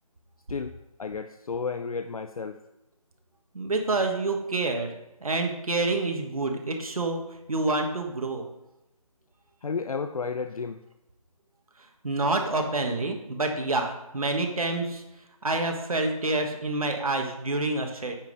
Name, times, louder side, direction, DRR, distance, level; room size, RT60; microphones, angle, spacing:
voice 1, 0.5-2.6 9.6-10.8, left 5 dB, 70° left, 9 dB, 0.4 m, -32 dB
voice 2, 3.5-4.9 5.2-7.2 7.5-8.5 12.0-15.0 15.4-18.2, right 2 dB, 70° right, 3 dB, 1.4 m, -27 dB
8.9 x 5.3 x 4.0 m, 0.91 s
figure-of-eight pair, 180°, 19 cm